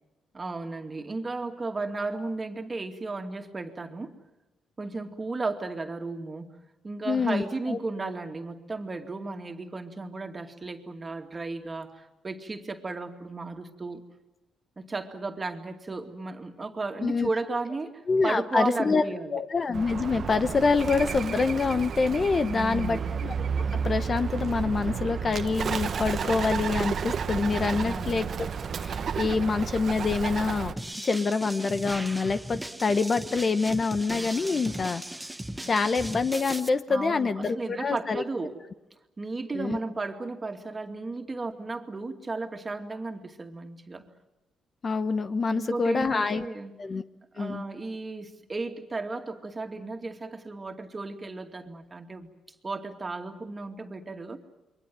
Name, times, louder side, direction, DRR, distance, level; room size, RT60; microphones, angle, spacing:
voice 1, 0.3-4.1 4.8-6.6 6.8-14.0 14.8-17.9 18.2-19.4 22.5-23.2 27.8-28.3 36.9-38.6 39.2-44.1 45.5-46.7 47.3-52.3 52.6-54.4, right 3 dB, 25° right, 5 dB, 2.4 m, -34 dB
voice 2, 7.0-7.8 17.0-17.3 18.1-23.3 23.7-28.3 28.8-30.7 31.0-35.0 35.6-38.2 39.5-39.8 44.8-46.4 46.8-47.0 47.4-47.6, left 4 dB, 35° left, 11 dB, 1.0 m, -26 dB
Bird, 19.7-30.7, right 6 dB, 50° right, 1.0 m, -31 dB
sound 1, 30.8-36.7, right 1 dB, 10° right, 1.0 m, -37 dB
28.5 x 23.0 x 7.6 m, 0.97 s
cardioid pair, 90°, 0 cm